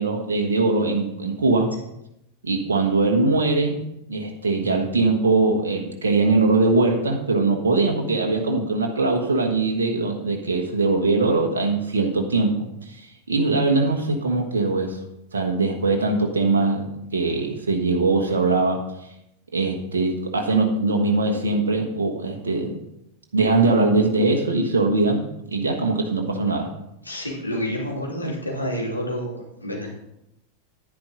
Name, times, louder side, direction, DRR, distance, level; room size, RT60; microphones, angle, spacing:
voice 1, 0.0-1.7 2.4-3.8 4.1-15.0 15.3-18.8 19.5-22.8 23.3-25.2 25.5-26.7, right 3 dB, 70° right, 2 dB, 1.4 m, -21 dB
voice 2, 27.0-29.9, equal, 85° left, -2 dB, 2.8 m, -29 dB
10.5 x 10.0 x 3.9 m, 0.82 s
figure-of-eight pair, 90°, 0 cm